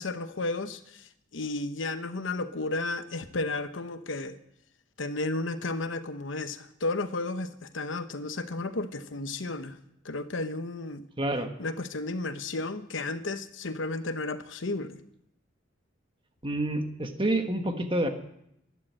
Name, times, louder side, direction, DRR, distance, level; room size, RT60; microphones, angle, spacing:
voice 1, 0.0-4.4 5.0-9.8 10.0-11.1 11.6-15.0, left 2 dB, 70° left, 1.0 m, -33 dB
voice 2, 11.2-11.5 16.4-18.1, right 1 dB, 25° right, 1.3 m, -28 dB
12.0 x 11.5 x 7.6 m
head